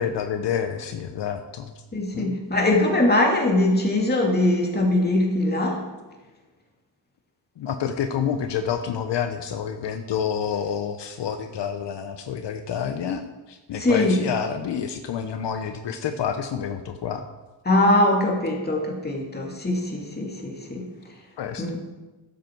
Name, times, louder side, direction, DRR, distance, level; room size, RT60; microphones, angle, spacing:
voice 1, 0.0-1.7 2.1-2.4 7.6-17.3 21.4-21.8, left 7 dB, 75° left, 7 dB, 0.8 m, -28 dB
voice 2, 1.9-5.8 13.8-14.2 17.7-20.9 21.6-21.8, left 1 dB, 20° left, 0 dB, 2.5 m, -22 dB
12.5 x 7.9 x 4.6 m, 1.2 s
cardioid pair, 90°, 43 cm